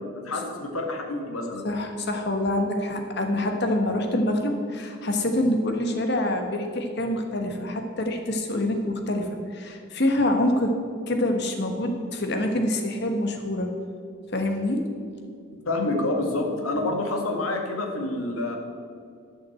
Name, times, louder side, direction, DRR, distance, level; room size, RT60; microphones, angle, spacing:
voice 1, 0.1-1.6 15.7-18.6, left 2 dB, 90° left, 2 dB, 1.8 m, -28 dB
voice 2, 1.6-10.7 11.1-13.7 14.3-14.8 16.7-16.8, left 1 dB, 50° left, 4 dB, 1.4 m, -26 dB
11.5 x 6.3 x 7.8 m, 2.3 s
head